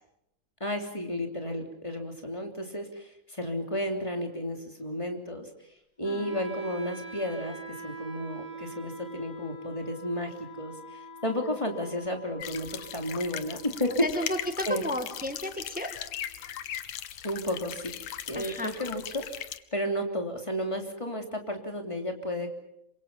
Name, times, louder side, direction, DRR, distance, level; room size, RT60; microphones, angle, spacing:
voice 1, 0.6-5.5 6.0-12.7 12.9-14.1 14.7-14.8 17.2-17.9 18.3-22.5, equal, 10° left, 3 dB, 2.9 m, -32 dB
Wind instrument woodwind instrument, 6.0-16.0, right 3 dB, 35° left, 4.4 m, -45 dB
sound 1, 12.4-19.6, left 11 dB, 65° left, 2.0 m, -39 dB
voice 2, 14.0-15.9 18.3-18.7, left 1 dB, 5° right, 6 dB, 0.7 m, -33 dB
27.5 x 24.5 x 5.7 m, 0.80 s
omnidirectional pair, 3.6 m